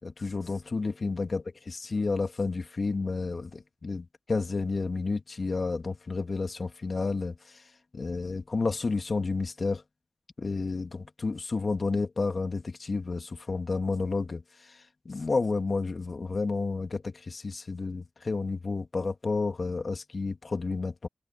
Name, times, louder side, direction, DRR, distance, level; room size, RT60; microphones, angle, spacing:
voice 1, 0.0-7.6 7.9-9.8 10.4-21.1, left 3 dB, 55° left, 2.7 m, -31 dB
cardioid pair, 55°, 0 cm